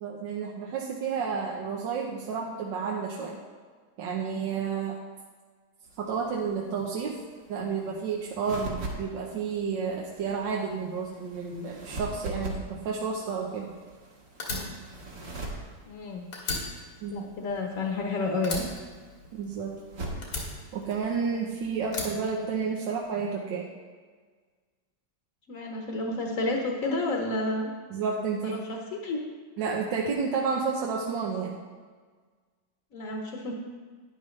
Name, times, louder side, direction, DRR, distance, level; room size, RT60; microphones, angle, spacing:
voice 1, 0.0-3.4 4.0-4.9 6.0-7.1 7.5-13.7 17.0-17.3 19.3-19.7 20.7-23.6 27.9-28.6 29.6-31.6, right 5 dB, 90° right, -2 dB, 1.6 m, -31 dB
sound 1, 5.8-21.9, right 2 dB, 70° right, 2.4 m, -43 dB
Fire, 14.4-16.0 16.3-18.1 18.4-19.8 20.2-21.4 21.9-23.1, left 2 dB, 85° left, 2.6 m, -36 dB
voice 2, 15.9-16.3 17.1-18.7 25.5-27.7 28.4-29.2 32.9-33.5, left 2 dB, 50° left, 0 dB, 1.3 m, -30 dB
12.0 x 10.0 x 3.2 m, 1.5 s
omnidirectional pair, 1.9 m